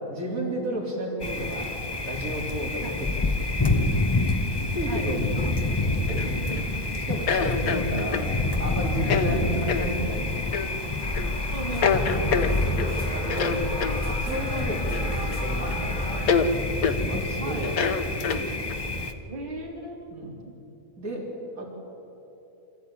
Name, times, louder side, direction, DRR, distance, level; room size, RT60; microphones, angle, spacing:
voice 1, 0.0-1.7 2.0-3.9 4.7-5.5 6.1-6.4 6.9-10.3 12.7-16.5 16.9-18.7 20.1-20.3 21.0-21.3 21.6-21.7, equal, 75° right, -2 dB, 4.3 m, -33 dB
Thunder, 1.2-19.1, left 2 dB, 20° left, 0.9 m, -28 dB
sound 1, 6.1-6.6 7.3-8.3 9.0-9.3 9.7-9.9 10.5-10.7 11.1-11.3 11.8-12.9 13.3-14.0 14.9-15.4 15.7-15.8 16.3-16.5 16.8-17.0 17.6-18.7, left 6 dB, 90° left, 1.5 m, -26 dB
voice 2, 6.4-7.3 11.5-12.5 14.5-14.7 17.4-17.7 19.3-20.1 20.5-20.6, right 2 dB, 35° right, -2 dB, 2.6 m, -37 dB
sound 2, 11.0-16.3, left 1 dB, 35° left, 3.7 m, -32 dB
25.5 x 14.5 x 8.8 m, 2.9 s
omnidirectional pair, 1.5 m